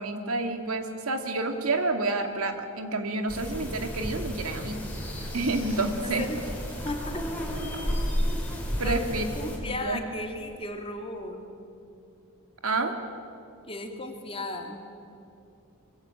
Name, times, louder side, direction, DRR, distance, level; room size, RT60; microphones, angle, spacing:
voice 1, 0.0-4.8 5.3-6.2 8.8-9.6 9.8-10.0 12.6-13.0, right 2 dB, 90° right, 5 dB, 2.5 m, -29 dB
sound 1, 3.3-9.6, equal, 5° left, 4.7 m, -32 dB
sound 2, 4.8-9.6, right 1 dB, 65° right, 6.6 m, -49 dB
voice 2, 6.0-6.4 6.8-7.2 8.8-9.0 9.3-11.5 13.7-14.9, left 2 dB, 25° left, 3 dB, 2.6 m, -35 dB
24.0 x 24.0 x 9.0 m, 2.6 s
head